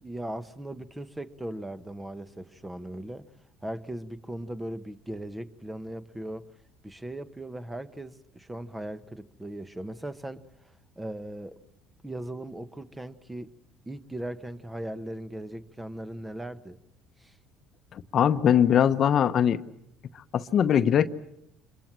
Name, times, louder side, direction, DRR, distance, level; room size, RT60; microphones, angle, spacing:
voice 1, 0.0-3.2 3.6-6.5 6.8-10.4 11.0-11.6 12.0-13.5 13.9-16.8 17.2-17.3, right 1 dB, 10° right, 12 dB, 1.3 m, -38 dB
voice 2, 18.1-19.6 20.3-21.1, left 9 dB, 50° left, 11 dB, 1.0 m, -21 dB
26.5 x 22.5 x 7.6 m, 0.78 s
supercardioid pair, 75°, 0 cm